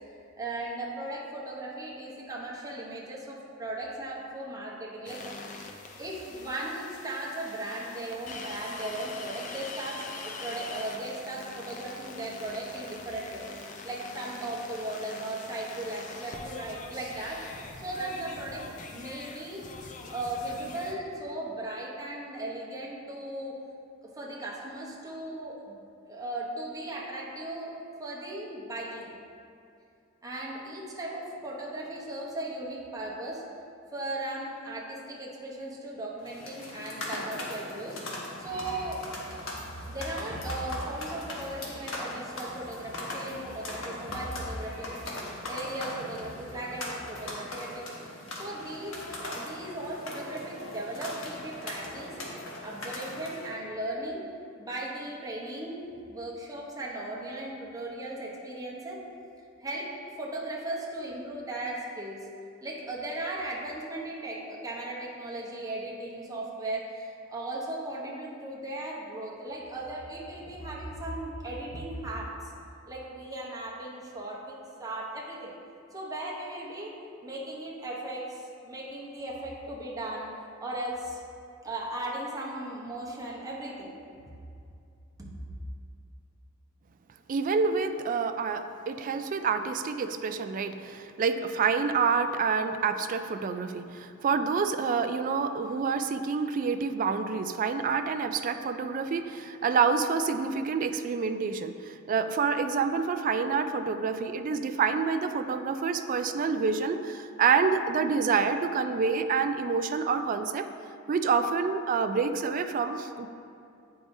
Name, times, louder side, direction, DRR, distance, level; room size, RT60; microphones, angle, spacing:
voice 1, 0.4-5.6 6.0-17.4 17.8-19.7 20.1-23.6 24.1-25.8 26.0-27.7 28.0-29.1 30.2-33.4 33.9-38.0 38.4-39.0 39.9-45.0 45.4-47.9 48.4-49.0 49.3-52.2 52.6-54.2 54.6-59.0 59.6-59.9 60.2-62.2 62.6-72.5 72.9-75.5 75.9-76.9 77.2-80.3 80.6-81.2 81.6-83.9 85.2-85.3, right 1 dB, 20° right, -5 dB, 0.9 m, -37 dB
sound 1, 5.1-20.9, left 3 dB, 40° left, 0.5 m, -43 dB
sound 2, 36.2-53.5, left 1 dB, 75° left, 1.1 m, -39 dB
voice 2, 87.3-110.7 111.1-113.3, right 5 dB, 40° right, 9 dB, 0.3 m, -27 dB
8.7 x 4.7 x 2.7 m, 2.5 s
head